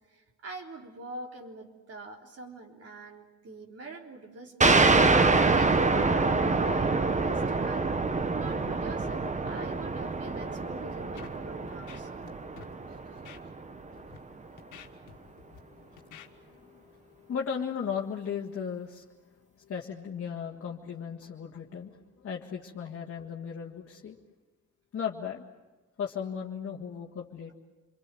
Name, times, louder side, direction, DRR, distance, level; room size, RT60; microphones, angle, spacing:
voice 1, 0.1-12.1 12.9-13.0, right 3 dB, 50° right, 2 dB, 3.7 m, -44 dB
sound 1, 4.6-13.8, right 3 dB, 25° right, 1.1 m, -26 dB
Scratching (performance technique), 11.2-11.4 11.7-12.3 12.6-12.7 13.2-13.4 14.0-14.2 14.6-15.6 16.0-16.3, left 9 dB, 80° left, 1.9 m, -49 dB
voice 2, 12.4-19.0 19.6-24.2 24.9-25.4 26.0-27.5, left 7 dB, 50° left, -1 dB, 1.9 m, -38 dB
27.5 x 23.0 x 7.7 m, 1.2 s
cardioid pair, 90°, 30 cm